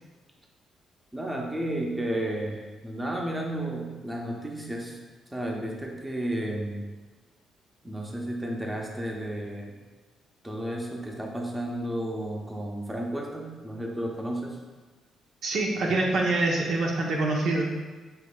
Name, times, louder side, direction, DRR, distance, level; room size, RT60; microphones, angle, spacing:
voice 1, 1.1-5.0 5.3-6.8 7.8-9.7 10.4-14.6, right 1 dB, 10° right, -1 dB, 0.7 m, -32 dB
voice 2, 15.4-17.7, right 2 dB, 65° right, -1 dB, 0.7 m, -25 dB
6.6 x 3.1 x 2.2 m, 1.3 s
cardioid pair, 90°, 0 cm